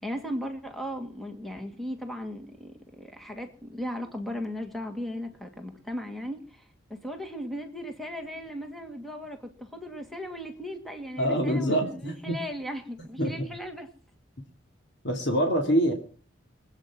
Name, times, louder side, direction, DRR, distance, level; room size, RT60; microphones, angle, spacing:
voice 1, 0.0-13.9, equal, ahead, 5 dB, 1.8 m, -37 dB
voice 2, 11.2-12.4 13.2-13.4 15.0-15.9, equal, 60° left, 2 dB, 2.7 m, -25 dB
25.0 x 9.0 x 6.0 m, 0.42 s
head